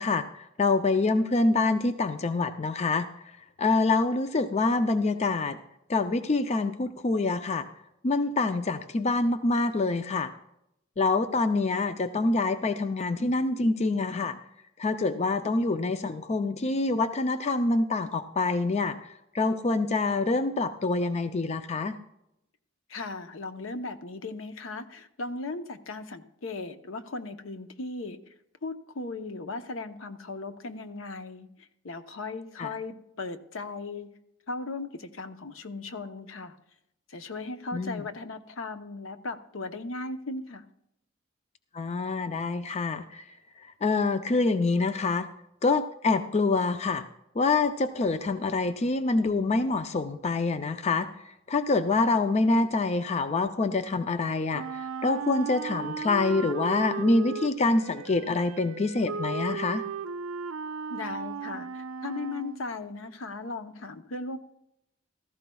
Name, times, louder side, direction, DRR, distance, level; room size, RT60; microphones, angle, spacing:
voice 1, 0.0-3.1 3.6-5.6 5.9-7.6 8.0-10.3 11.0-14.3 14.8-19.0 19.3-21.9 32.6-32.7 37.7-38.0 41.7-43.2 43.8-45.3 45.6-47.0 47.4-51.1 51.5-59.8, left 3 dB, 35° left, 10 dB, 0.5 m, -26 dB
voice 2, 22.9-28.2 28.6-34.1 34.5-36.6 37.1-40.6 60.9-64.4, left 3 dB, 75° left, 8 dB, 0.8 m, -37 dB
Wind instrument woodwind instrument, 54.5-62.6, right 5 dB, 80° right, 0.5 m, -36 dB
16.0 x 14.5 x 2.3 m, 0.80 s
head